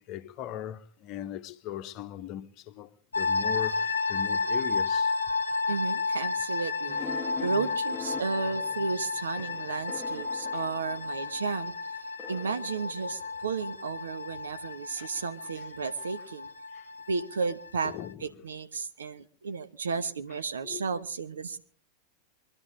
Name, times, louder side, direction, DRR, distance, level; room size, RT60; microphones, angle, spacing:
voice 1, 0.0-5.2 10.5-10.6 15.0-15.3 15.6-15.7 16.7-16.9 17.8-18.2 20.6-20.8, left 12 dB, 40° left, 0.9 m, -39 dB
sound 1, 3.1-18.1, left 4 dB, 75° left, 0.8 m, -32 dB
voice 2, 5.7-7.0 7.4-12.0 12.3-16.5 17.1-18.0 18.2-21.6, right 5 dB, 70° right, 1.0 m, -33 dB
sound 2, 6.9-11.4 12.2-13.7, left 6 dB, 15° left, 1.0 m, -43 dB
24.0 x 12.0 x 3.7 m
figure-of-eight pair, 90°, 0 cm